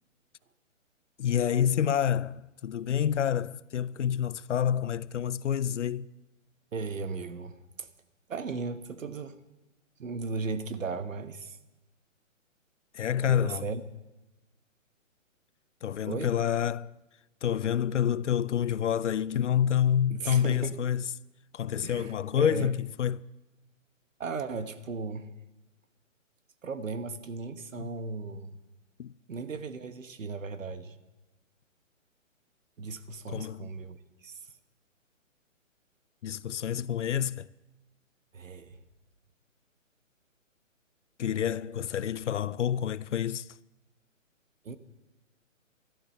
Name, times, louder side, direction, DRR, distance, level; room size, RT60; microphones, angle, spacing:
voice 1, 1.2-6.1 12.9-13.6 15.8-16.9 17.4-21.0 21.5-23.2 27.8-27.9 29.0-29.1 33.3-33.7 36.2-37.5 41.2-43.5, left 9 dB, 65° left, 0.5 m, -28 dB
voice 2, 6.7-7.9 8.3-9.4 10.0-11.6 13.2-13.8 16.0-16.3 20.1-20.8 21.8-22.7 24.2-25.3 26.6-28.5 29.3-31.0 32.8-34.5 38.3-38.8 44.6-44.8, right 4 dB, 75° right, 1.3 m, -36 dB
12.5 x 12.0 x 7.7 m
hypercardioid pair, 170°, 40 cm